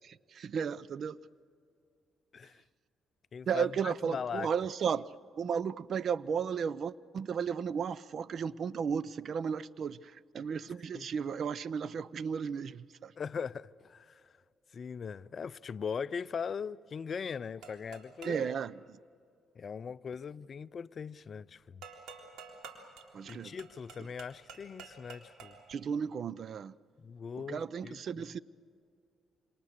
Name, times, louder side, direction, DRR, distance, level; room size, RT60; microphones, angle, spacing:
voice 1, 0.0-1.2 3.5-13.1 18.2-19.0 23.1-23.6 25.7-26.8 27.4-28.4, right 7 dB, 55° right, 0.6 m, -34 dB
voice 2, 3.3-4.5 10.9-11.1 13.2-14.2 14.7-18.5 19.6-21.8 23.2-25.6 27.0-28.2, left 6 dB, 45° left, 0.5 m, -40 dB
sound 1, 17.6-18.5 21.8-25.8, right 5 dB, 85° right, 3.6 m, -50 dB
28.0 x 26.5 x 6.7 m
cardioid pair, 90°, 0 cm